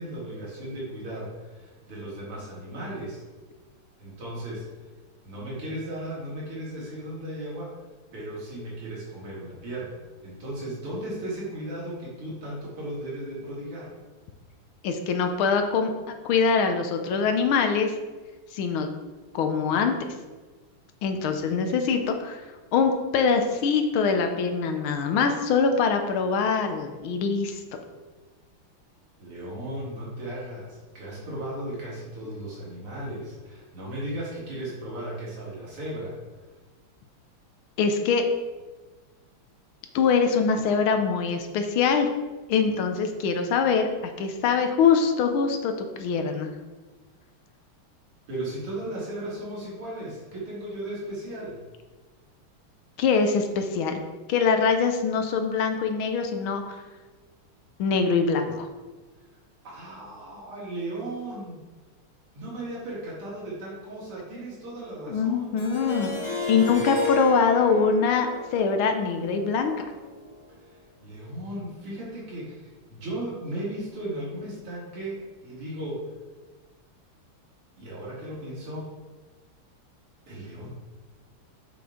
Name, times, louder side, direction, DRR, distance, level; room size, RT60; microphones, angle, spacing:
voice 1, 0.0-3.2 4.0-4.6 5.2-7.7 8.1-13.9 29.2-36.2 48.3-51.6 59.6-61.6 62.3-65.6 70.6-70.7 71.0-76.1 77.8-78.9 80.3-80.7, right 1 dB, 85° right, -6 dB, 3.1 m, -36 dB
voice 2, 14.8-17.9 18.5-18.9 19.3-20.0 21.0-22.4 22.7-27.6 37.8-38.2 39.9-42.1 42.5-46.5 53.0-54.0 54.3-56.6 57.8-58.7 65.1-66.1 66.5-68.3 68.5-69.7, left 5 dB, 75° left, 6 dB, 1.5 m, -23 dB
Harp, 65.6-70.5, left 3 dB, 15° right, 1.4 m, -33 dB
7.0 x 5.9 x 3.7 m, 1.3 s
omnidirectional pair, 2.4 m